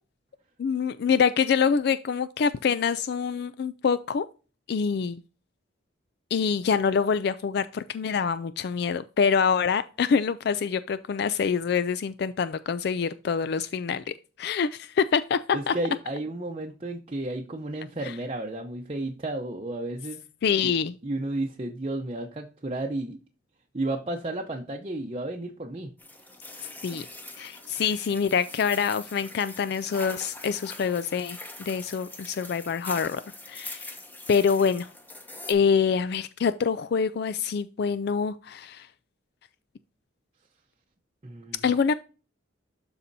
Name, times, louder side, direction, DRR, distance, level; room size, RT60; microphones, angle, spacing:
voice 1, 0.6-4.2 4.7-5.2 6.3-15.4 15.7-15.8 18.0-18.1 20.4-20.9 26.8-27.1 27.4-33.2 33.5-33.9 34.3-34.9 35.5-38.9 41.6-41.9, left 6 dB, 55° left, 14 dB, 0.3 m, -25 dB
voice 2, 15.5-20.2 20.6-20.7 21.0-23.2 23.7-25.9 26.5-26.7 27.0-27.1 41.2-41.7, right 2 dB, 30° right, 1 dB, 0.7 m, -32 dB
sound 1, 26.0-35.5, left 2 dB, 10° left, 1.0 m, -43 dB
12.5 x 4.2 x 2.6 m, 0.34 s
head